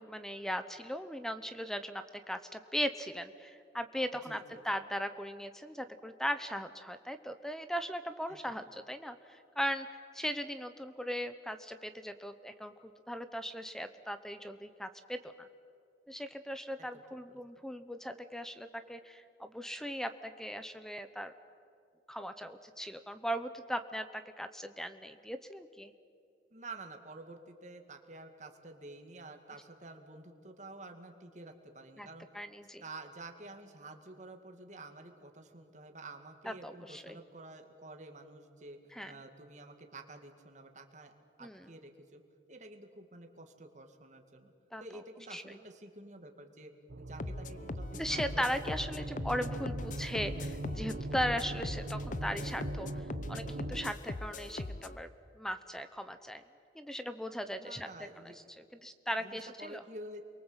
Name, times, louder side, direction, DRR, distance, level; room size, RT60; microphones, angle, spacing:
voice 1, 0.0-4.4 4.6-15.5 16.1-21.3 22.1-25.9 32.0-32.1 32.3-32.8 36.5-37.2 38.9-39.1 41.4-41.6 44.7-44.8 45.3-45.5 47.9-52.9 53.3-55.1 55.4-56.4 56.7-57.9 58.6-59.8, equal, 5° left, 10 dB, 0.9 m, -38 dB
voice 2, 4.2-4.6 8.3-8.4 16.8-17.0 26.5-32.3 32.8-42.2 42.5-44.5 44.8-48.5 48.9-49.2 57.6-58.3 59.2-60.2, right 2 dB, 40° right, 5 dB, 2.3 m, -50 dB
sound 1, 46.9-53.9, right 1 dB, 75° right, 1.0 m, -41 dB
sound 2, 47.2-55.0, left 2 dB, 45° left, 0.7 m, -41 dB
29.5 x 23.0 x 8.1 m, 2.4 s
head